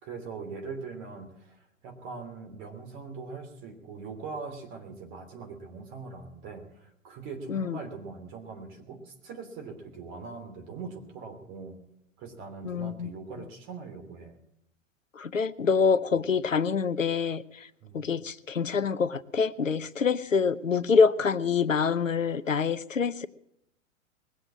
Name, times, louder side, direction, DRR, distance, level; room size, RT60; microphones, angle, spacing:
voice 1, 0.0-11.8 12.2-14.4 16.2-16.3 17.8-18.0, right 4 dB, 30° right, 4 dB, 3.0 m, -41 dB
voice 2, 12.6-13.1 15.2-17.4 17.9-23.3, left 5 dB, 85° left, 16 dB, 0.7 m, -26 dB
20.5 x 7.9 x 7.4 m, 0.77 s
figure-of-eight pair, 105°, 38 cm